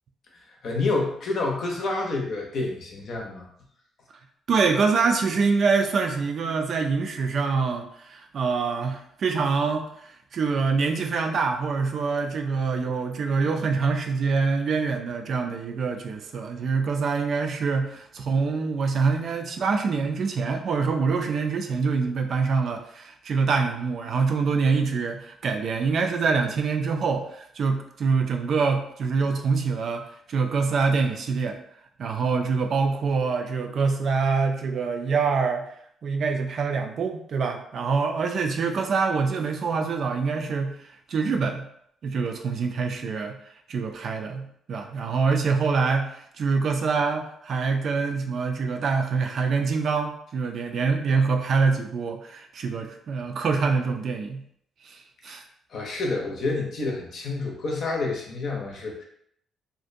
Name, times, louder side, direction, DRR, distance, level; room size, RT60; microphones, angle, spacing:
voice 1, 0.6-3.4 55.3-55.4 55.7-59.0, left 3 dB, 60° left, 0 dB, 0.7 m, -28 dB
voice 2, 4.5-31.6 32.0-35.7 36.0-40.7 41.1-41.6 42.0-43.3 43.7-54.4 54.8-55.4, right 4 dB, 60° right, 4 dB, 0.4 m, -25 dB
2.5 x 2.2 x 2.5 m, 0.69 s
cardioid pair, 90°, 0 cm